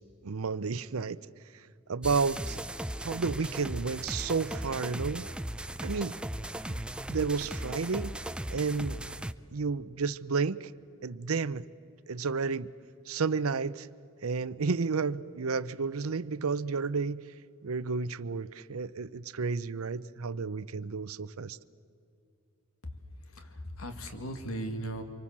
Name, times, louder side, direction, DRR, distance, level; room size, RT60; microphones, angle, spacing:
voice 1, 0.2-1.2 1.9-2.6 3.0-5.3 5.8-6.2 6.7-6.8 7.1-8.1 8.5-9.1 9.5-10.7 11.0-11.7 12.1-12.7 13.1-13.9 14.2-17.2 17.6-21.6, right 4 dB, 80° right, 16 dB, 0.7 m, -31 dB
sound 1, 2.0-9.3, right 1 dB, 5° right, 0.5 m, -37 dB
voice 2, 23.2-25.0, right 1 dB, 75° left, 6 dB, 2.2 m, -38 dB
26.0 x 24.5 x 7.3 m, 2.6 s
head